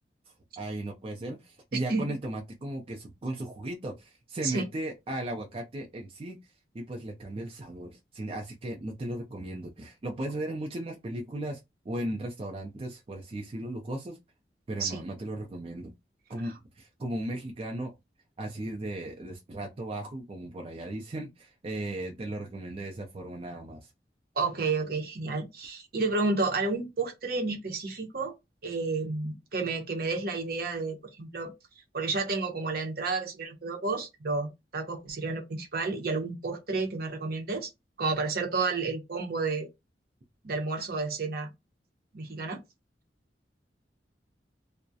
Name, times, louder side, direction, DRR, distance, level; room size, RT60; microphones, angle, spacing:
voice 1, 0.6-6.4 6.7-11.6 11.9-14.2 14.7-15.9 16.3-17.9 18.4-23.9, right 1 dB, 35° right, 0.4 m, -36 dB
voice 2, 24.4-28.3 28.6-31.5 31.9-37.7 38.0-39.7 40.4-41.5 42.1-42.6, right 3 dB, 60° right, 0.7 m, -31 dB
2.3 x 2.1 x 2.6 m
head